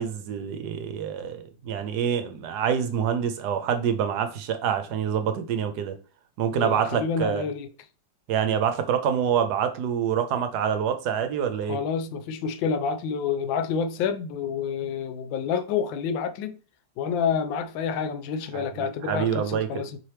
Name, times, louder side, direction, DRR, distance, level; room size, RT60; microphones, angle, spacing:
voice 1, 0.0-5.9 6.4-7.5 8.3-11.8 18.5-19.8, right 8 dB, 70° right, 1.1 m, -26 dB
voice 2, 6.5-7.7 11.7-16.6 17.0-20.0, left 6 dB, 90° left, 1.3 m, -28 dB
4.7 x 2.9 x 3.2 m
omnidirectional pair, 2.0 m